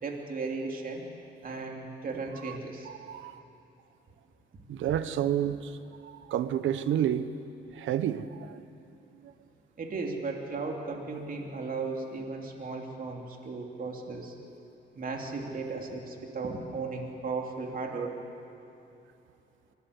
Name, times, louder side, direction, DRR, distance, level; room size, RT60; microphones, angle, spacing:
voice 1, 0.0-1.0 1.4-2.9 9.8-14.3 14.9-18.2, right 3 dB, 45° right, 1 dB, 3.0 m, -36 dB
voice 2, 2.9-3.4 4.7-5.7 6.0-7.3 7.7-8.7 9.2-9.3, right 10 dB, 75° right, 13 dB, 1.0 m, -30 dB
23.5 x 18.0 x 8.2 m, 2.8 s
cardioid pair, 90°, 20 cm